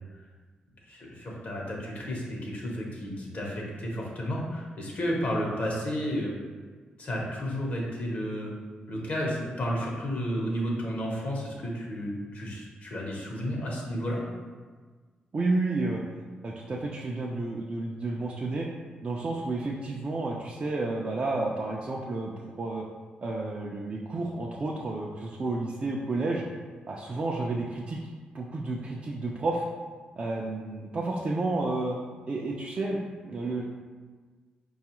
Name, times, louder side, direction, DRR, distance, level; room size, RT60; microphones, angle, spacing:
voice 1, 0.9-6.3 7.0-8.5 8.9-14.2, equal, 60° left, -2 dB, 0.8 m, -32 dB
voice 2, 15.3-16.0 16.4-18.7 19.0-22.8 23.2-26.5 26.9-28.0 28.3-29.7 30.2-32.0 32.3-33.6, right 2 dB, 40° right, -3 dB, 0.4 m, -31 dB
4.7 x 2.3 x 2.9 m, 1.5 s
cardioid pair, 80°, 3 cm